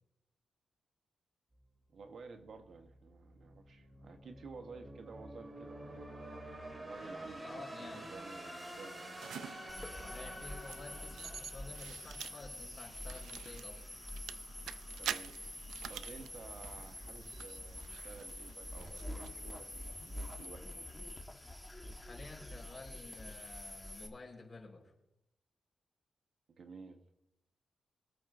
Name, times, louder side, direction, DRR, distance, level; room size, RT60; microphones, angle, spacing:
sound 1, 1.6-12.6, right 1 dB, 30° right, 2.4 m, -49 dB
voice 1, 1.9-6.1 6.8-9.2 15.0-15.3 15.9-20.9 26.5-27.0, right 4 dB, 65° right, 6 dB, 1.1 m, -53 dB
voice 2, 7.4-8.0 10.0-13.8 21.9-24.9, left 3 dB, 35° left, -1 dB, 4.2 m, -51 dB
sound 2, 9.2-20.5, right 9 dB, 90° right, 0.4 m, -48 dB
sound 3, 9.7-24.1, left 1 dB, 15° left, 1.3 m, -46 dB
22.5 x 8.8 x 2.5 m, 0.84 s
cardioid pair, 65°, 0 cm